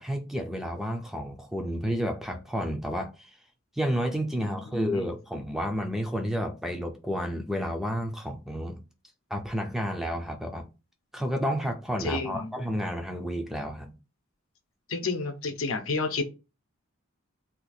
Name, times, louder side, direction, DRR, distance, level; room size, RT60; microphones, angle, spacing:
voice 1, 0.0-3.4 3.8-8.8 9.3-10.7 11.1-13.9, equal, ahead, 0.3 m, -31 dB
voice 2, 4.4-5.1 12.0-12.5 14.9-16.2, left 3 dB, 70° left, 0.6 m, -31 dB
2.7 x 2.3 x 4.0 m
head